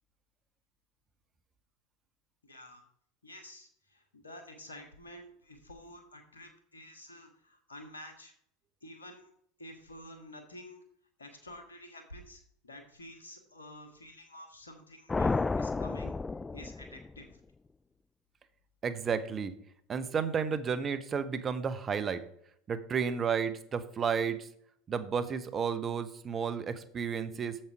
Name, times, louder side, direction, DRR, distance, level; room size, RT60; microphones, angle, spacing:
voice 1, 2.5-2.8 3.2-8.3 8.8-9.3 9.6-10.8 11.2-16.2 16.5-17.3, left 1 dB, 90° left, 5 dB, 1.6 m, -50 dB
sound 1, 15.1-17.3, left 3 dB, 15° left, 0.3 m, -32 dB
voice 2, 18.8-19.5 19.9-22.2 22.7-24.5 24.9-27.6, right 6 dB, 30° right, 11 dB, 0.9 m, -32 dB
7.6 x 7.3 x 4.7 m, 0.68 s
hypercardioid pair, 80°, 0 cm